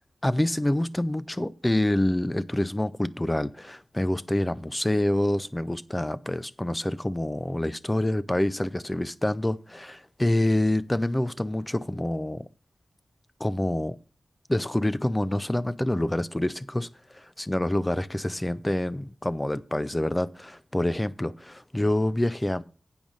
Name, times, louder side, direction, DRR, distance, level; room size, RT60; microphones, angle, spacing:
voice 1, 0.2-12.5 13.4-14.0 14.5-16.9 17.1-22.6, left 1 dB, 15° left, 0.5 m, -27 dB
8.9 x 5.2 x 6.3 m
wide cardioid pair, 90°, 0 cm